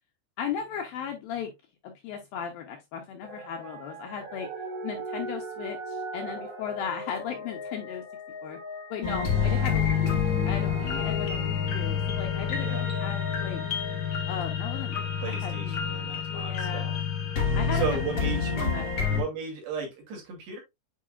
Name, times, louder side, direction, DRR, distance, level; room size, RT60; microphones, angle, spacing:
voice 1, 0.4-1.5 1.8-4.5 4.8-8.0 8.4-8.6 8.9-10.1 10.5-13.6 14.3-15.9 16.3-16.9 17.5-17.9 18.6-19.2, left 8 dB, 75° left, 2.2 m, -36 dB
sound 1, 3.2-15.2 15.8-15.9, equal, 55° right, 4.0 m, -40 dB
sound 2, 9.0-19.2, left 7 dB, 50° left, 1.9 m, -28 dB
voice 2, 15.2-17.0 17.5-20.6, right 6 dB, 75° right, 4.7 m, -35 dB
8.4 x 4.8 x 2.3 m
omnidirectional pair, 5.0 m